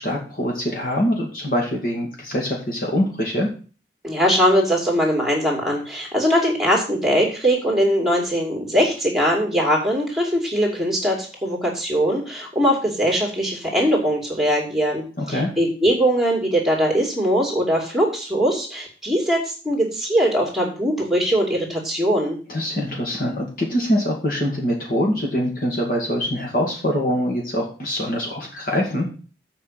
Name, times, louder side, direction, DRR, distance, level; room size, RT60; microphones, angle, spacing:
voice 1, 0.0-3.5 15.2-15.5 22.5-29.1, equal, 50° left, -1 dB, 2.2 m, -24 dB
voice 2, 4.0-22.4, equal, ahead, 0 dB, 2.5 m, -21 dB
7.8 x 5.3 x 7.5 m, 0.37 s
head